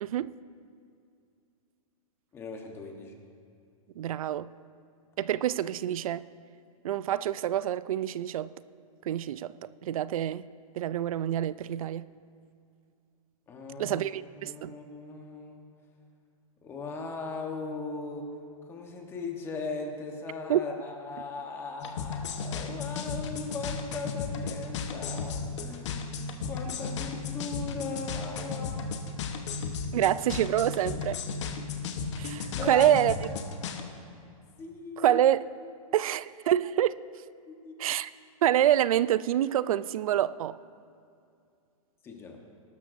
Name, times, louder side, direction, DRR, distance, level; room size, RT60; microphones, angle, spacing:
voice 1, 0.0-0.3 4.0-4.5 5.2-6.3 6.8-8.5 9.1-9.5 9.8-10.5 10.8-12.1 13.8-14.7 20.5-20.6 29.9-31.2 32.2-33.1 35.0-35.5 35.9-37.0 37.8-38.1 38.4-40.6, right 11 dB, 70° right, 0.4 m, -26 dB
voice 2, 2.3-3.1 13.5-14.1 14.4-15.6 16.6-18.3 18.7-28.8 32.5-33.0 33.3-33.9 34.6-35.2 35.9-36.0 37.5-37.8 42.0-42.4, left 4 dB, 15° left, 1.1 m, -39 dB
sound 1, 21.8-33.8, left 5 dB, 50° left, 1.2 m, -35 dB
21.5 x 12.5 x 2.7 m
hypercardioid pair, 165°, 19 cm